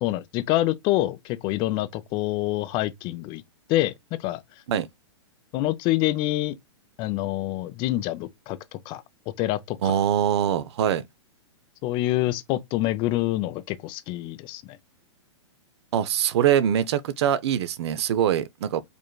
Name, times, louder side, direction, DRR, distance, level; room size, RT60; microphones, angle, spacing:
voice 1, 0.0-3.4 3.7-3.9 4.2-4.4 5.5-6.5 7.0-9.0 9.4-9.9 11.8-14.8, left 16 dB, 30° left, 0.4 m, -26 dB
voice 2, 9.8-11.0 15.9-18.8, right 9 dB, 60° right, 0.5 m, -23 dB
5.1 x 3.1 x 2.3 m
hypercardioid pair, 125°, 16 cm